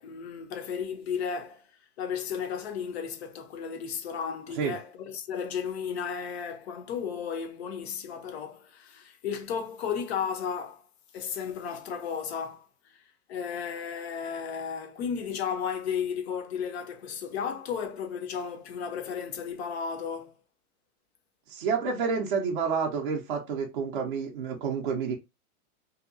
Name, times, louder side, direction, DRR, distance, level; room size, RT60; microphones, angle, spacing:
voice 1, 0.0-1.6 2.0-10.8 11.1-12.7 13.3-20.3, left 7 dB, 45° left, 0.5 m, -34 dB
voice 2, 21.5-25.2, right 5 dB, 35° right, 0.4 m, -29 dB
2.7 x 2.2 x 2.4 m
hypercardioid pair, 165°, 45 cm